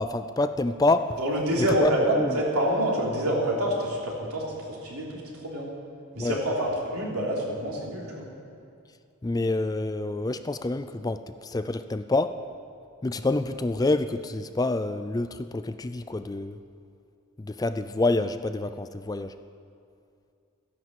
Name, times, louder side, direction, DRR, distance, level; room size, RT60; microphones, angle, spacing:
voice 1, 0.0-1.2 1.8-2.4 6.2-6.4 9.2-12.4 13.0-16.6 17.4-19.3, left 2 dB, 15° left, 11 dB, 0.3 m, -27 dB
voice 2, 1.2-5.7 6.1-8.3, right 1 dB, 85° right, -3 dB, 3.4 m, -27 dB
14.5 x 11.0 x 7.6 m, 2.5 s
head